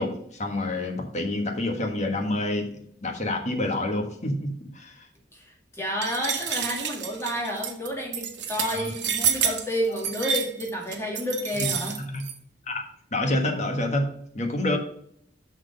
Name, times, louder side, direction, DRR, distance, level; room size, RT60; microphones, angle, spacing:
voice 1, 0.0-5.0 8.7-8.9 12.1-12.2 12.7-12.8 13.1-14.1 14.3-14.8, left 1 dB, 40° left, 3 dB, 1.5 m, -28 dB
voice 2, 5.3-12.0, equal, 15° left, -1 dB, 2.0 m, -30 dB
sound 1, 6.0-12.3, right 8 dB, 80° right, 1.1 m, -29 dB
6.2 x 5.9 x 5.2 m, 0.68 s
head